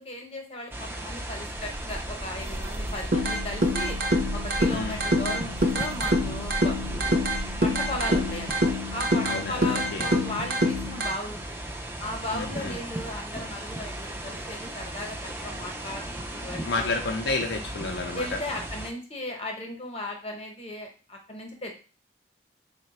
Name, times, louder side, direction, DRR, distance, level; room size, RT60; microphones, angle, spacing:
voice 1, 0.0-4.0 4.3-7.2 7.6-11.6 12.0-16.9 18.1-21.7, left 1 dB, 35° left, 2 dB, 0.8 m, -36 dB
sound 1, 0.7-18.9, right 1 dB, 10° right, 0.4 m, -37 dB
sound 2, 1.5-8.8, right 1 dB, 90° right, 0.8 m, -37 dB
sound 3, 3.1-11.1, equal, 50° right, 0.6 m, -26 dB
voice 2, 9.2-10.1 12.3-12.8 16.6-18.4, left 3 dB, 65° left, 3 dB, 0.5 m, -30 dB
3.8 x 2.2 x 4.1 m, 0.35 s
head